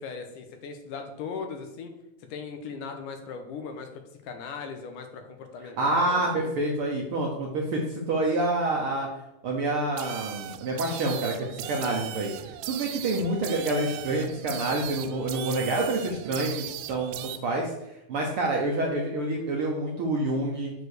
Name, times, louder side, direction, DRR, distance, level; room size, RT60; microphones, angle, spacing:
voice 1, 0.0-1.9 2.3-3.9 4.2-6.5, left 5 dB, 85° left, 6 dB, 2.5 m, -38 dB
voice 2, 5.8-9.1 9.4-20.7, right 2 dB, 65° right, -1 dB, 1.3 m, -28 dB
sound 1, 10.0-17.4, right 12 dB, 85° right, 2.1 m, -38 dB
6.7 x 4.7 x 6.5 m, 0.91 s
omnidirectional pair, 3.6 m